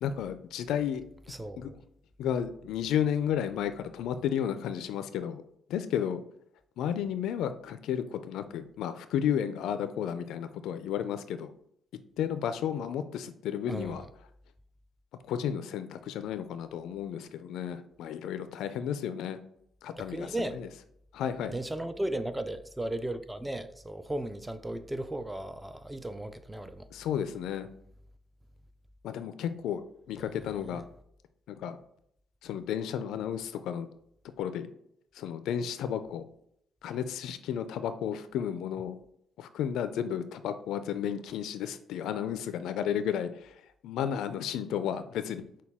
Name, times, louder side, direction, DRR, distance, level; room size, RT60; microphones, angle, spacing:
voice 1, 0.0-1.0 1.6-1.7 2.2-5.4 5.7-6.2 6.8-11.5 12.2-14.0 15.3-19.4 19.8-20.7 21.1-21.5 26.9-27.7 29.0-30.8 31.5-31.8 32.4-33.9 34.4-34.7 35.2-36.3 36.8-39.0 39.4-43.5 43.8-45.4, left 9 dB, 85° left, 0.3 m, -32 dB
voice 2, 1.3-1.8 13.7-14.0 20.0-20.6 21.5-26.9 30.7-30.8, right 1 dB, 10° right, 0.3 m, -36 dB
6.0 x 2.2 x 3.5 m
cardioid pair, 90°, 0 cm